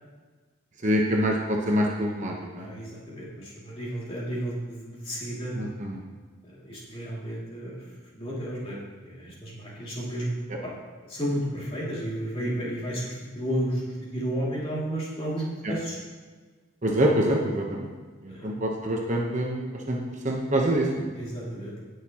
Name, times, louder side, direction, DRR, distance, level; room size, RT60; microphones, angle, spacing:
voice 1, 0.8-2.7 5.5-6.0 15.6-15.7 16.8-17.9 18.2-20.0 20.2-21.1, right 1 dB, 35° right, -1 dB, 1.0 m, -25 dB
voice 2, 2.6-5.6 6.5-7.8 8.2-8.8 9.0-10.4 10.6-10.7 11.0-16.0 18.3-18.5 21.1-21.7, right 1 dB, 25° left, -6 dB, 2.6 m, -32 dB
17.5 x 6.6 x 3.0 m, 1.4 s
head